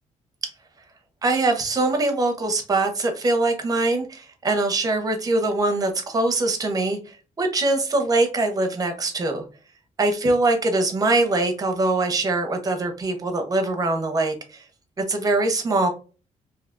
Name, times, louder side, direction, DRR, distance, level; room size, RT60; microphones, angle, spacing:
voice 1, 1.2-9.4 10.0-14.6 15.0-15.9, right 2 dB, 30° right, 5 dB, 0.7 m, -23 dB
3.2 x 2.8 x 2.5 m, 0.34 s
cardioid pair, 155°, 13 cm